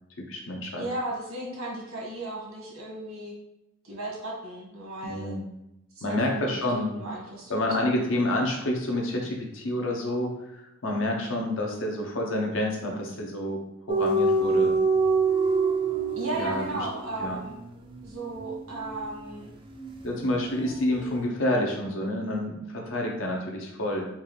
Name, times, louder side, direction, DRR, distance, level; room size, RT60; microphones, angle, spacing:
voice 1, 0.2-0.9 5.0-5.5 6.0-7.0 7.5-13.6 13.9-14.8 16.4-16.9 17.2-17.4 20.0-24.1, left 1 dB, 65° left, 0 dB, 0.8 m, -28 dB
voice 2, 0.8-3.3 3.8-5.4 5.9-7.6 16.1-17.5 18.0-19.5, right 1 dB, 85° right, -3 dB, 1.5 m, -35 dB
sound 1, 13.9-20.7 20.9-21.2, right 3 dB, 25° right, 0.4 m, -27 dB
4.5 x 2.5 x 3.2 m, 0.87 s
head